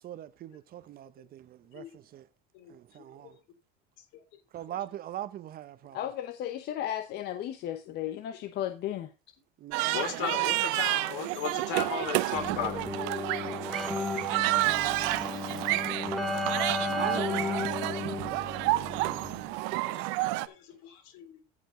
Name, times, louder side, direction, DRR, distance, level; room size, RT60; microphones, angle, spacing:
voice 1, 0.0-1.8 2.1-2.2 2.7-3.3 4.5-6.0 9.6-10.0 13.7-14.1 14.4-14.9 15.2-15.9 16.9-19.4, right 12 dB, 45° right, 0.8 m, -41 dB
voice 2, 5.9-9.1, left 11 dB, 55° left, 0.9 m, -34 dB
sound 1, 9.7-20.5, right 19 dB, 75° right, 0.7 m, -30 dB
voice 3, 9.8-12.8 13.3-13.7 14.0-14.1 14.6-14.7 15.0-15.1 15.8-15.9 16.5-16.6 17.2-17.4 19.8-21.4, left 8 dB, 75° left, 2.8 m, -37 dB
Keyboard (musical), 12.3-19.6, left 3 dB, ahead, 2.2 m, -34 dB
14.5 x 5.2 x 3.7 m
supercardioid pair, 110°, 21 cm